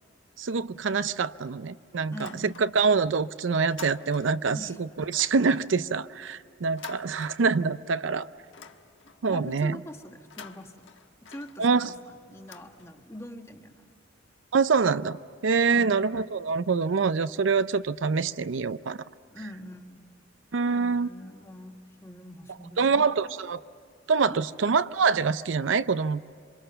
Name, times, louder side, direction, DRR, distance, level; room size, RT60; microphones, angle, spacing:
voice 1, 0.4-8.3 9.2-9.8 11.6-11.9 14.5-19.0 20.5-21.1 22.8-23.6 24.1-26.3, right 5 dB, 75° right, 14 dB, 0.5 m, -25 dB
sound 1, 2.1-3.0 3.3-4.5 5.0-7.9 8.2-9.3 10.1-13.3, left 7 dB, 70° left, 1.3 m, -49 dB
voice 2, 2.1-2.6 4.5-4.8 9.3-10.9 11.2-14.0 15.7-16.1 19.3-20.1 20.7-23.3 24.2-24.4, equal, 15° left, 5 dB, 1.3 m, -44 dB
27.0 x 25.5 x 6.8 m, 2.4 s
head